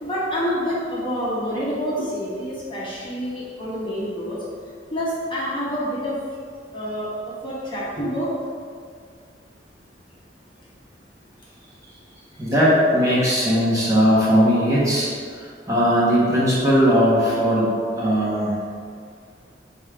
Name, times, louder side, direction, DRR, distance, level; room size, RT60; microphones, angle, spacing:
voice 1, 0.0-4.4 4.9-6.2 6.7-7.1 7.4-8.3, equal, 30° left, -7 dB, 1.4 m, -27 dB
voice 2, 12.4-15.1 15.3-18.6, equal, 20° right, -8 dB, 1.5 m, -19 dB
5.3 x 4.2 x 5.1 m, 2.1 s
head